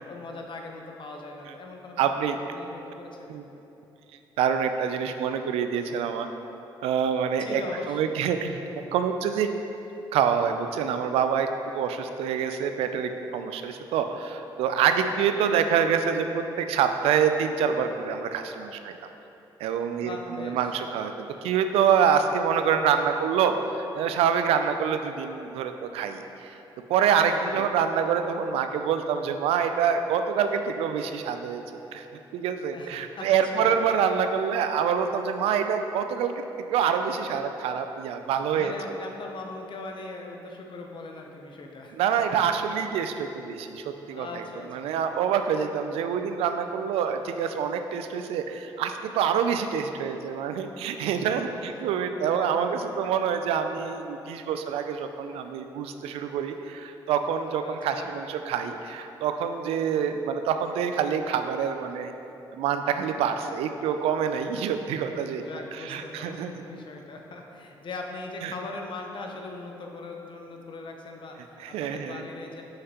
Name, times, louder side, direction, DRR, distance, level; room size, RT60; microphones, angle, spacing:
voice 1, 0.1-2.0 2.3-3.4 7.4-8.2 14.9-15.3 20.0-20.7 27.3-27.7 32.7-33.8 38.5-42.0 44.1-44.9 51.2-51.8 52.2-52.7 57.6-58.1 65.2-72.6, left 3 dB, 55° left, 2 dB, 0.8 m, -40 dB
voice 2, 2.0-2.4 3.3-3.4 4.4-6.3 6.8-7.6 7.9-9.5 10.1-18.9 19.6-26.6 26.9-31.6 31.9-36.4 36.7-38.7 41.9-44.4 44.7-62.1 62.5-65.4 65.7-66.5 68.4-68.5 71.6-72.2, right 7 dB, 80° right, 7 dB, 0.4 m, -26 dB
6.4 x 5.6 x 2.9 m, 3.0 s
supercardioid pair, 60°, 10 cm